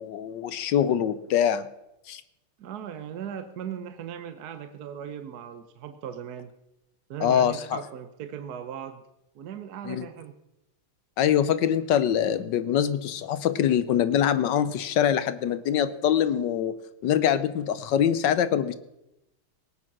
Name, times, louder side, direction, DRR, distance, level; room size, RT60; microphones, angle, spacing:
voice 1, 0.0-1.6 2.1-2.2 7.2-7.8 9.8-10.1 11.2-16.8 17.0-18.7, left 9 dB, 70° left, 14 dB, 1.2 m, -24 dB
voice 2, 2.6-6.5 7.1-9.0 9.3-10.4, right 8 dB, 60° right, 9 dB, 1.1 m, -38 dB
18.0 x 8.8 x 6.0 m, 0.89 s
omnidirectional pair, 2.4 m